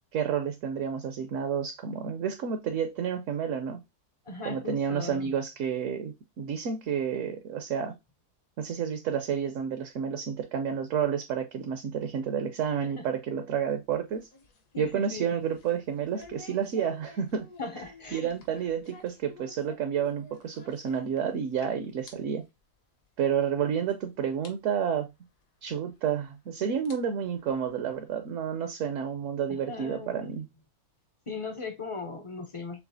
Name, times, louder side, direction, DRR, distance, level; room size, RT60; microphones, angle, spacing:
voice 1, 0.1-3.8 4.4-7.9 8.6-14.3 14.8-17.5 18.1-22.4 23.2-25.1 25.6-30.5, right 7 dB, 65° right, 0.9 m, -30 dB
voice 2, 4.3-5.3 13.0-13.1 14.7-15.4 17.6-18.3 29.5-30.4 31.3-32.8, left 3 dB, 40° left, 0.4 m, -38 dB
sound 1, 13.6-21.6 21.8-22.1 22.5-22.6 23.3-23.4 23.9-24.0 24.4-24.5 25.9-26.0 26.7-28.1, left 3 dB, 65° left, 1.4 m, -53 dB
6.8 x 2.4 x 2.6 m
omnidirectional pair, 1.6 m